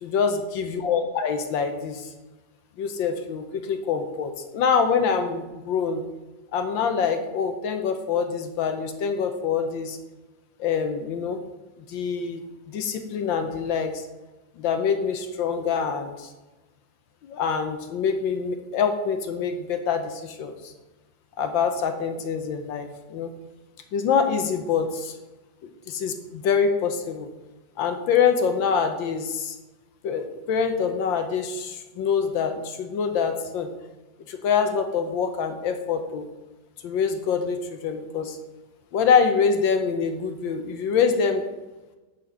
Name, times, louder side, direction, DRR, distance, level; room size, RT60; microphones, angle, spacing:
voice 1, 0.0-2.1 2.8-6.0 6.5-10.0 10.6-11.4 11.9-14.0 14.6-16.3 17.2-20.7 21.4-23.3 23.9-25.1 25.9-27.3 27.8-29.6 30.0-33.7 34.3-36.3 36.8-38.4 38.9-41.4, left 6 dB, 70° left, 6 dB, 1.4 m, -25 dB
9.1 x 4.3 x 5.3 m, 1.1 s
omnidirectional pair, 2.3 m